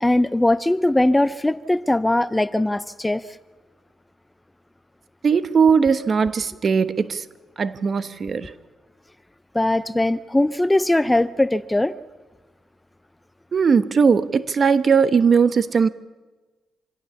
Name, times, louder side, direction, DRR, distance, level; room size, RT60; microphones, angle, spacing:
voice 1, 0.0-3.2 9.5-12.0, left 1 dB, 10° left, 0.6 m, -20 dB
voice 2, 5.2-7.3 7.6-8.5 13.5-15.9, right 6 dB, 45° right, 1.1 m, -19 dB
27.0 x 17.0 x 7.0 m
cardioid pair, 90°, 0 cm